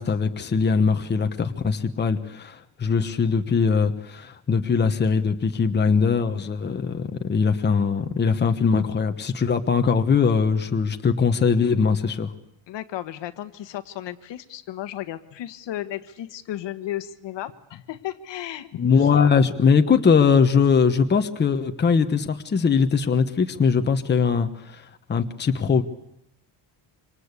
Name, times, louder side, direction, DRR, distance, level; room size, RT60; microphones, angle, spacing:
voice 1, 0.0-12.3 18.8-25.8, left 5 dB, 20° left, 6 dB, 1.2 m, -21 dB
voice 2, 12.7-19.1, left 13 dB, 70° left, 9 dB, 1.6 m, -34 dB
27.0 x 26.0 x 8.3 m, 0.79 s
cardioid pair, 175°, 46 cm